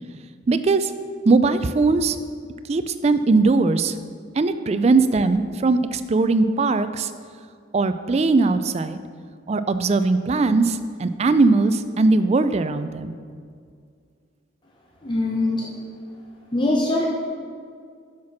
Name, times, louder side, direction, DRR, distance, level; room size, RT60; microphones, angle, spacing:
voice 1, 0.5-0.9 1.3-2.2 2.7-4.0 4.4-7.1 7.7-9.0 9.5-13.1, right 3 dB, 35° right, 11 dB, 0.4 m, -20 dB
voice 2, 15.0-15.7 16.5-17.1, left 2 dB, 25° left, -3 dB, 0.7 m, -22 dB
7.5 x 5.9 x 5.8 m, 2.1 s
head